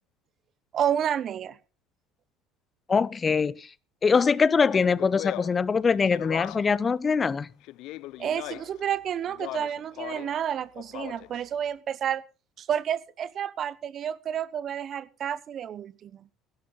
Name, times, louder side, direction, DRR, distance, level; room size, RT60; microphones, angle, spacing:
voice 1, 0.7-1.6 8.2-12.2 12.6-16.3, right 9 dB, 45° right, 1.0 m, -30 dB
voice 2, 2.9-3.7 4.0-7.5, left 5 dB, 30° left, 0.8 m, -23 dB
Speech, 4.6-6.8 7.6-8.8 9.3-10.4 10.7-11.4, left 17 dB, 65° left, 0.6 m, -39 dB
16.5 x 12.0 x 4.0 m
hypercardioid pair, 70°, 0 cm